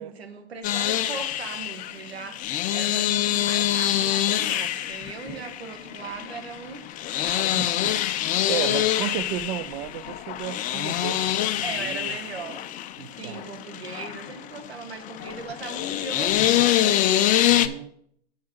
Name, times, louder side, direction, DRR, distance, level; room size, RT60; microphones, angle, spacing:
voice 1, 0.0-6.9 7.2-7.8 11.6-12.7 13.2-17.2, right 5 dB, 80° right, 1.7 m, -39 dB
sound 1, 0.6-17.7, left 13 dB, 25° left, 0.5 m, -25 dB
voice 2, 7.6-8.2 8.5-12.2 13.0-13.4 17.5-17.9, right 13 dB, 50° right, 0.5 m, -34 dB
7.3 x 7.2 x 4.6 m
hypercardioid pair, 110°, 31 cm